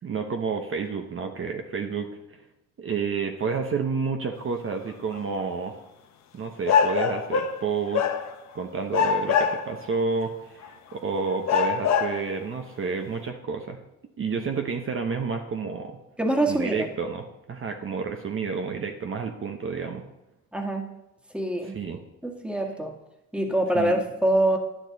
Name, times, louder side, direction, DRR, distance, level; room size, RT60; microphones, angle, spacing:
voice 1, 0.0-2.4 2.8-5.8 6.3-8.0 8.5-13.8 14.2-16.0 16.4-20.0 21.6-22.0 23.7-23.9, right 5 dB, 45° right, 4 dB, 1.0 m, -30 dB
sound 1, 5.2-5.3 6.6-7.7 7.9-8.5 8.9-9.9 10.6-10.7 11.5-12.3, left 6 dB, 65° left, 1.0 m, -23 dB
voice 2, 16.2-16.9 20.5-20.9 21.3-21.8 22.2-22.9 23.3-24.6, right 1 dB, 5° right, 2 dB, 1.7 m, -24 dB
10.0 x 9.1 x 4.0 m, 0.92 s
cardioid pair, 90°, 30 cm